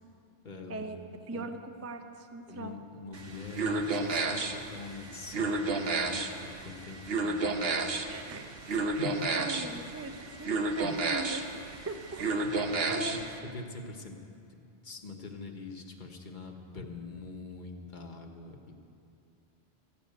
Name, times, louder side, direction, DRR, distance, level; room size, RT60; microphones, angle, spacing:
voice 1, 0.4-0.9 1.3-1.5 2.5-8.0 9.0-9.4 10.4-10.5 10.8-10.9 12.6-13.2 13.5-14.2 14.8-18.8, left 3 dB, 45° left, 3 dB, 1.2 m, -43 dB
voice 2, 1.3-2.8 8.1-8.5 8.9-12.4 12.8-13.2, right 2 dB, 20° right, 7 dB, 0.4 m, -40 dB
sound 1, 3.1-13.4, right 3 dB, 60° right, 1.1 m, -32 dB
14.0 x 6.9 x 9.2 m, 2.5 s
omnidirectional pair, 1.1 m